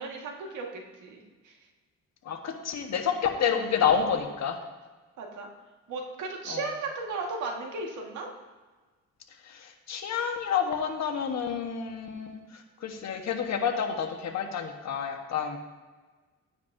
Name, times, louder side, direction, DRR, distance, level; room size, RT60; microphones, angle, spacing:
voice 1, 0.0-1.5 5.2-5.5 5.9-8.3, right 3 dB, 75° right, 0 dB, 1.8 m, -35 dB
voice 2, 2.2-4.6 6.5-6.7 9.4-15.6, left 7 dB, 60° left, 4 dB, 1.3 m, -29 dB
12.0 x 9.5 x 2.7 m, 1.3 s
cardioid pair, 90°, 30 cm